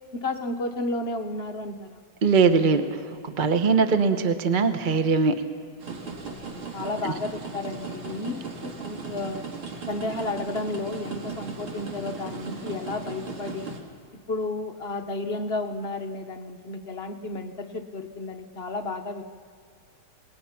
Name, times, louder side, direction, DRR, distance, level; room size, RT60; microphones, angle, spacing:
voice 1, 0.1-2.0 6.3-9.4 9.9-13.7 14.3-19.2, left 2 dB, 45° left, 5 dB, 0.8 m, -32 dB
voice 2, 2.2-2.9 3.2-5.3 7.0-7.1, right 5 dB, 35° right, 8 dB, 0.8 m, -21 dB
sound 1, 5.8-13.8, right 4 dB, 80° right, 3.1 m, -37 dB
27.5 x 20.5 x 5.8 m, 2.2 s
omnidirectional pair, 2.3 m